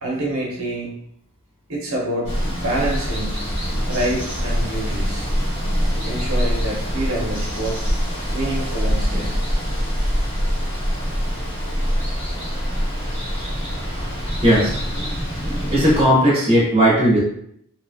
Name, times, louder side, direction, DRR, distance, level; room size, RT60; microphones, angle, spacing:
voice 1, 0.0-0.9 1.7-3.5 3.9-5.3 6.0-7.8 8.3-9.4, right 1 dB, 70° right, -3 dB, 0.8 m, -27 dB
Water, 2.2-16.0, equal, 25° left, 1.0 m, -24 dB
voice 2, 14.4-14.8 15.7-17.2, equal, 25° right, -6 dB, 0.8 m, -16 dB
2.7 x 2.2 x 2.7 m, 0.73 s
head